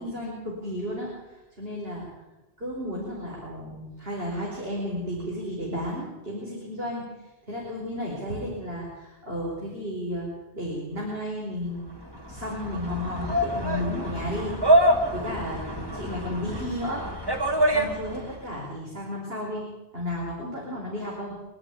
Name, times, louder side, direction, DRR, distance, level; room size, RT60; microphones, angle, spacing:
voice 1, 0.0-2.1 2.6-7.2 7.5-10.3 10.5-12.0 12.3-17.1 17.3-19.7 19.9-21.3, left 1 dB, 75° right, -4 dB, 5.4 m, -33 dB
sound 1, 12.0-18.4, right 1 dB, 25° right, 2.6 m, -26 dB
25.0 x 11.0 x 9.8 m, 1.1 s
omnidirectional pair, 1.0 m